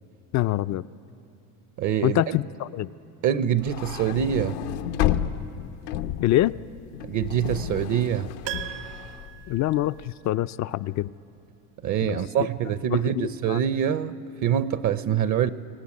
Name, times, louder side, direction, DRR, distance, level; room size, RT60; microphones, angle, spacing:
voice 1, 0.3-0.8 2.0-2.9 6.2-6.6 9.5-11.1 12.0-12.2 12.9-13.6, left 14 dB, 40° left, 0.5 m, -25 dB
voice 2, 1.8-2.4 3.2-4.6 7.0-8.3 11.8-15.5, right 9 dB, 45° right, 0.7 m, -25 dB
sound 1, 3.6-9.9, left 11 dB, 80° left, 1.0 m, -31 dB
Piano, 8.4-10.5 10.8-10.9, right 12 dB, 70° right, 1.5 m, -38 dB
24.0 x 18.5 x 9.7 m
supercardioid pair, 105°, 44 cm